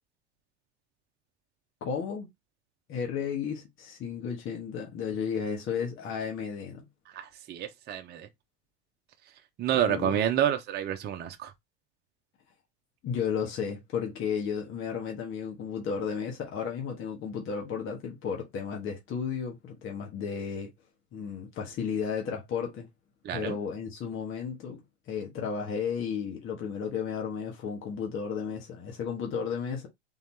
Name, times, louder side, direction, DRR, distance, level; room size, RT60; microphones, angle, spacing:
voice 1, 1.8-2.3 2.9-6.8 9.9-10.2 13.0-20.7 21.1-22.9 23.3-24.8 25.1-29.9, left 6 dB, 35° left, 1.4 m, -33 dB
voice 2, 7.1-8.3 9.6-11.5 23.2-23.6, right 10 dB, 30° right, 0.7 m, -29 dB
3.8 x 2.9 x 3.7 m
hypercardioid pair, 105°, 34 cm